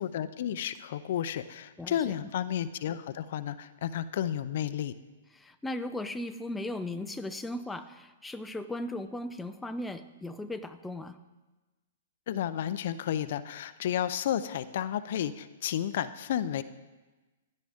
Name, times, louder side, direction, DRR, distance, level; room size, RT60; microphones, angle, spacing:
voice 1, 0.0-4.9 12.3-16.6, left 10 dB, 55° left, 12 dB, 0.6 m, -32 dB
voice 2, 1.8-2.1 5.3-11.2, left 1 dB, 5° left, 7 dB, 0.6 m, -37 dB
16.0 x 11.5 x 3.6 m, 1.2 s
hypercardioid pair, 120°, 0 cm